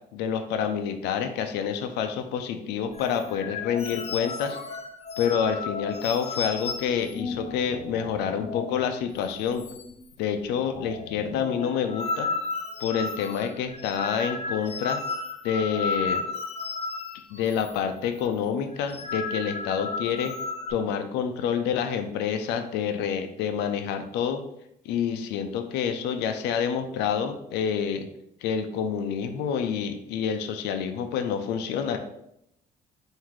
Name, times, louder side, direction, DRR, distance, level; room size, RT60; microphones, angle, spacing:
voice 1, 0.1-4.6 5.2-9.7 10.2-12.3 12.8-15.0 15.4-16.2 17.3-20.3 20.7-24.4 24.9-28.1 28.4-32.0, left 7 dB, 90° left, 7 dB, 0.5 m, -28 dB
sound 1, 2.9-8.9 9.2-9.3 9.6-10.1 10.4-17.8 18.0-18.3 18.7-20.7, left 4 dB, 40° left, 0.5 m, -34 dB
3.8 x 2.7 x 4.6 m, 0.77 s
cardioid pair, 110°, 17 cm